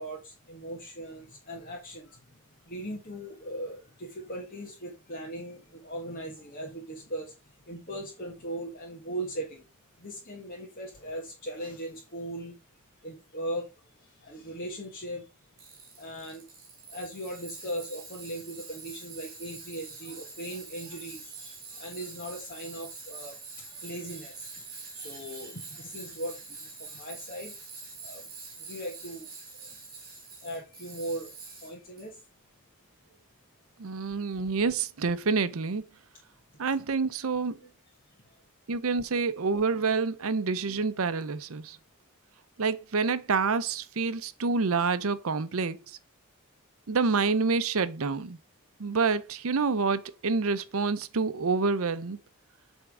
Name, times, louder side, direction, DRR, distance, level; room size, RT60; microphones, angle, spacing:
voice 1, 0.0-9.6 10.0-12.6 13.0-15.3 16.0-16.4 16.9-27.5 28.0-29.8 30.4-32.2 38.0-38.4, right 1 dB, 40° left, 1.4 m, -39 dB
Tools, 15.6-32.1, right 4 dB, 40° right, 2.7 m, -45 dB
voice 2, 33.8-35.8 36.6-37.6 38.7-41.8 42.6-45.8 46.9-48.4 48.8-52.2, right 4 dB, 70° right, 0.6 m, -27 dB
8.0 x 3.6 x 4.9 m
head